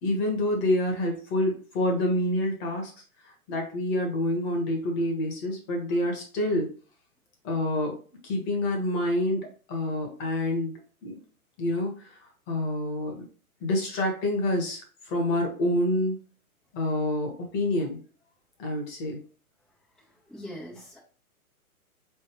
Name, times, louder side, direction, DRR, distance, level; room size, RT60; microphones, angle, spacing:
voice 1, 0.0-2.9 3.2-6.7 7.4-8.0 8.2-11.2 11.6-13.3 13.6-16.2 16.7-18.0 18.6-19.2, left 1 dB, 25° left, 1 dB, 1.3 m, -27 dB
voice 2, 20.3-21.0, equal, ahead, -9 dB, 0.7 m, -41 dB
4.2 x 3.4 x 3.1 m, 0.40 s
hypercardioid pair, 130°, 44 cm